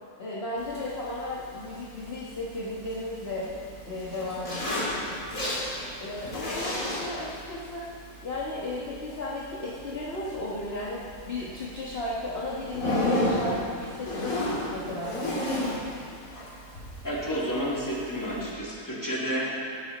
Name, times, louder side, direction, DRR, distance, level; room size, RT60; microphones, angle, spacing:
voice 1, 0.2-3.5 3.8-4.9 6.0-7.9 8.2-15.5, left 2 dB, 45° left, -6 dB, 1.5 m, -35 dB
Zipper (clothing), 0.6-18.5, left 1 dB, 65° left, 3.4 m, -34 dB
voice 2, 17.0-19.5, equal, 10° left, -6 dB, 2.6 m, -30 dB
18.0 x 9.8 x 4.1 m, 2.6 s
omnidirectional pair, 1.6 m